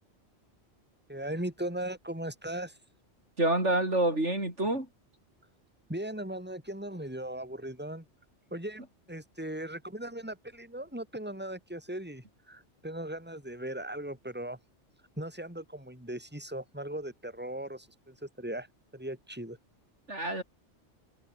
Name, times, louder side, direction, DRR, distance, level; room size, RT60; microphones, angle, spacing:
voice 1, 1.1-2.8 5.9-8.0 8.5-8.8 9.1-14.6 15.2-18.7 18.9-19.6, right 1 dB, 10° right, 5.0 m, -38 dB
voice 2, 3.4-4.9 20.1-20.4, right 1 dB, 75° right, 7.1 m, -27 dB
omnidirectional pair, 1.2 m